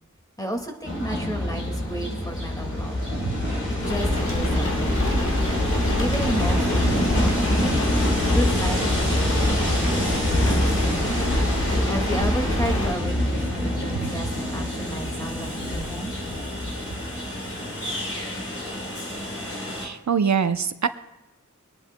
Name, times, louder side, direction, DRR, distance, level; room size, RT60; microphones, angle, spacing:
voice 1, 0.4-3.0 3.9-5.4 5.9-7.8 8.3-11.3 11.9-16.2, equal, 10° left, 2 dB, 2.0 m, -33 dB
Train, 0.8-19.9, left 1 dB, 45° left, 3.7 m, -25 dB
sound 1, 3.8-12.9, left 1 dB, 70° left, 2.3 m, -28 dB
voice 2, 19.8-20.9, right 6 dB, 65° right, 11 dB, 0.7 m, -24 dB
25.0 x 10.5 x 2.2 m, 0.97 s
wide cardioid pair, 50°, 30 cm